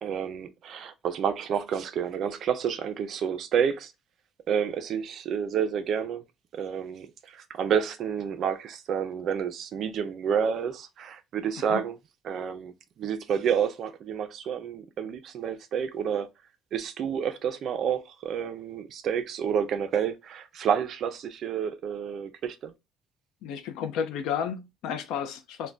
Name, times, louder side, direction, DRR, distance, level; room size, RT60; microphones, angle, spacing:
voice 1, 0.0-3.9 4.5-6.2 6.5-11.9 12.2-16.3 16.7-22.7, right 7 dB, 45° right, 0.4 m, -29 dB
voice 2, 23.4-25.7, left 8 dB, 90° left, 0.4 m, -32 dB
2.5 x 2.1 x 3.2 m
cardioid pair, 175°, 0 cm